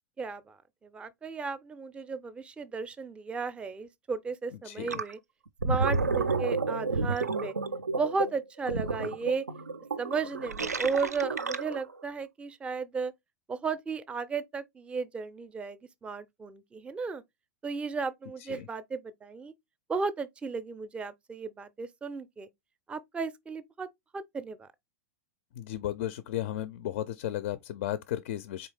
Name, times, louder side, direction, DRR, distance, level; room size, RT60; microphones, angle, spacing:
voice 1, 0.2-0.6 0.8-5.2 5.6-7.5 7.9-9.4 10.0-13.1 13.5-17.2 17.6-19.5 19.9-22.5 22.9-23.9 24.1-24.7, right 4 dB, 15° right, 0.4 m, -34 dB
voice 2, 4.6-5.0 18.5-18.7 25.5-28.7, left 12 dB, 50° left, 0.4 m, -34 dB
Gurgling, 4.9-5.1 5.5-11.9, right 4 dB, 85° right, 0.4 m, -31 dB
4.2 x 3.3 x 3.2 m
figure-of-eight pair, 95°, 9 cm